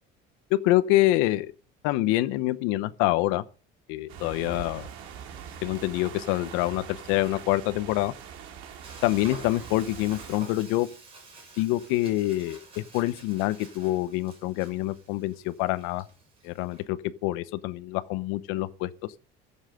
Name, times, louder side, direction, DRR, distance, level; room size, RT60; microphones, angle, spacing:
voice 1, 0.5-1.5 1.8-3.4 3.9-4.9 5.6-8.1 9.0-10.9 11.6-16.0 16.4-17.0 17.2-18.9, left 17 dB, 85° left, 0.8 m, -26 dB
sound 1, 4.1-10.4, right 8 dB, 70° right, 2.5 m, -43 dB
Frying (food), 8.8-16.8, right 3 dB, 30° right, 5.8 m, -49 dB
15.5 x 7.3 x 6.5 m
cardioid pair, 165°, 20 cm